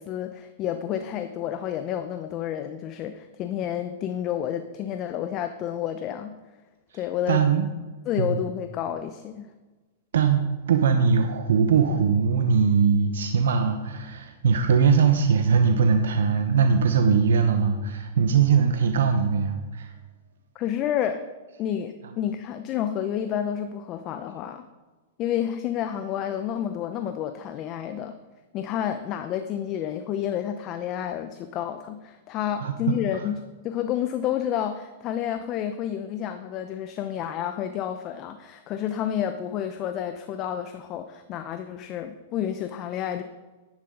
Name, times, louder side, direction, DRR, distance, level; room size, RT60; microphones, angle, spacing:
voice 1, 0.0-6.3 6.9-7.4 8.1-9.5 20.5-21.2 21.6-24.6 25.2-28.2 28.5-33.4 33.6-43.2, left 10 dB, 40° left, 8 dB, 0.7 m, -30 dB
voice 2, 6.9-7.7 8.2-8.4 10.1-19.9 32.6-33.2, right 6 dB, 80° right, 6 dB, 0.9 m, -21 dB
10.5 x 10.5 x 3.9 m, 1.2 s
hypercardioid pair, 120°, 0 cm